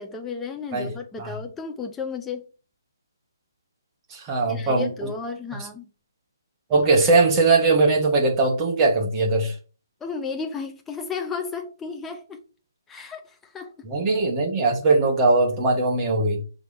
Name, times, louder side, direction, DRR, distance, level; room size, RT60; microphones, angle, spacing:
voice 1, 0.0-2.5 4.5-5.9 10.0-12.4 12.9-13.7, left 5 dB, 5° left, 0.6 m, -33 dB
voice 2, 4.1-4.9 6.7-9.5 13.8-16.4, right 3 dB, 15° right, 1.6 m, -20 dB
5.7 x 3.9 x 5.1 m
hypercardioid pair, 165°, 2 cm